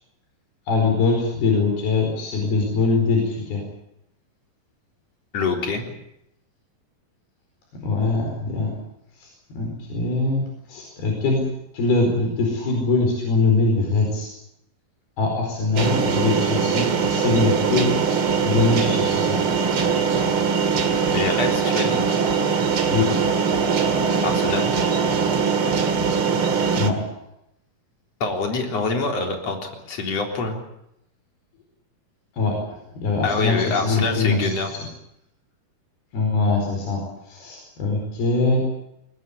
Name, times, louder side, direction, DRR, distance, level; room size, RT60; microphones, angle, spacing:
voice 1, 0.7-3.6 7.8-8.7 9.1-9.3 9.5-11.4 11.7-14.3 15.2-17.9 18.4-19.4 22.9-23.1 26.7-27.2 32.3-34.9 36.1-38.6, left 3 dB, 85° left, 1 dB, 6.6 m, -22 dB
voice 2, 5.3-5.8 21.1-22.0 24.2-24.7 28.2-30.6 33.2-34.7, left 4 dB, 45° left, 3 dB, 4.6 m, -25 dB
sound 1, 15.8-26.9, right 5 dB, 45° right, 2.3 m, -21 dB
21.5 x 20.5 x 8.4 m, 0.80 s
omnidirectional pair, 4.4 m